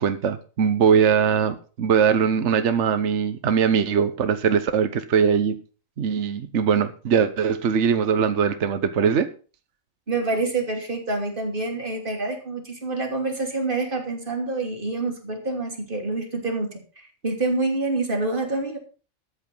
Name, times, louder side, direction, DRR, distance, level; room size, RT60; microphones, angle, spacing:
voice 1, 0.0-5.6 6.0-9.3, right 7 dB, 60° right, 10 dB, 1.3 m, -21 dB
voice 2, 10.1-18.8, right 3 dB, 40° right, 2 dB, 3.1 m, -27 dB
13.0 x 8.4 x 5.5 m, 0.37 s
omnidirectional pair, 1.4 m